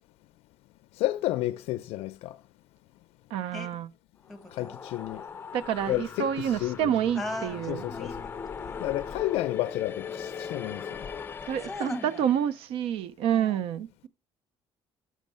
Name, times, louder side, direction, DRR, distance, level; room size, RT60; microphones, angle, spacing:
voice 1, 1.0-2.4 4.5-5.2 5.9-6.9 7.7-8.2 8.8-11.1, left 16 dB, 80° left, 0.4 m, -31 dB
voice 2, 3.3-3.9 5.5-7.8 11.5-14.1, right 9 dB, 70° right, 0.5 m, -28 dB
sound 1, 4.2-12.6, left 6 dB, 20° left, 0.5 m, -39 dB
voice 3, 4.3-4.8 7.2-8.2 8.5-8.8 11.6-12.3 13.3-13.6, left 2 dB, ahead, 1.2 m, -38 dB
6.4 x 6.2 x 6.6 m
cardioid pair, 170°, 10 cm